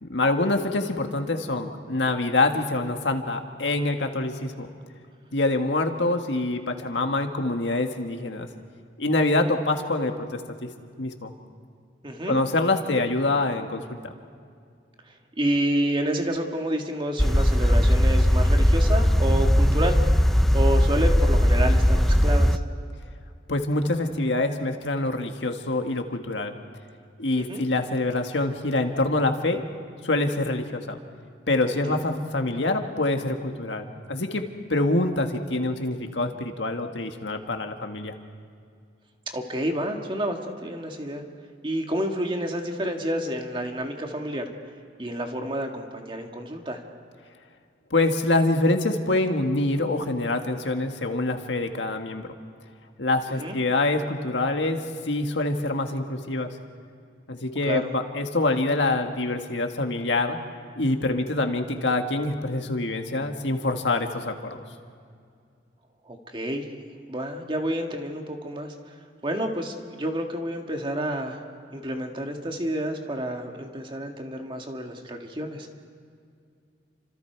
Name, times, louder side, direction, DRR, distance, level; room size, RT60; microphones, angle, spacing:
voice 1, 0.0-4.7 5.3-8.5 9.0-10.7 11.0-11.3 12.3-14.0 23.5-26.5 27.2-29.6 30.0-31.0 31.5-38.1 47.9-52.3 53.0-56.5 57.3-60.4 60.8-64.6, left 2 dB, 90° left, 5 dB, 1.8 m, -25 dB
voice 2, 12.0-12.4 15.1-22.6 27.4-27.6 31.6-32.2 39.3-41.2 41.6-44.4 45.0-46.8 53.4-53.6 57.6-57.9 66.1-66.7 67.1-69.0 69.2-71.4 71.7-75.8, right 1 dB, 30° right, 3 dB, 1.9 m, -29 dB
sound 1, 17.2-22.6, equal, ahead, 0.5 m, -19 dB
30.0 x 26.0 x 4.7 m, 2.2 s
head